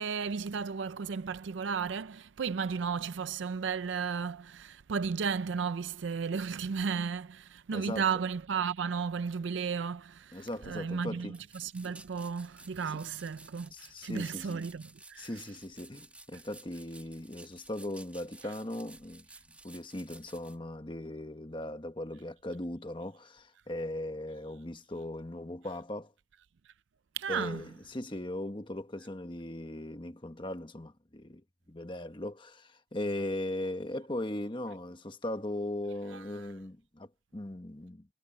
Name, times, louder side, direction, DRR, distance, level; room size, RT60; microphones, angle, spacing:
voice 1, 0.0-15.3 18.4-18.5 27.1-27.6 36.1-36.5, right 6 dB, 80° right, 0.5 m, -34 dB
voice 2, 7.7-8.0 10.3-11.3 13.7-14.6 15.2-19.2 19.6-26.1 27.3-31.4 31.7-38.1, left 1 dB, 25° left, 1.2 m, -38 dB
sound 1, 11.3-20.6, right 2 dB, 5° right, 1.9 m, -54 dB
head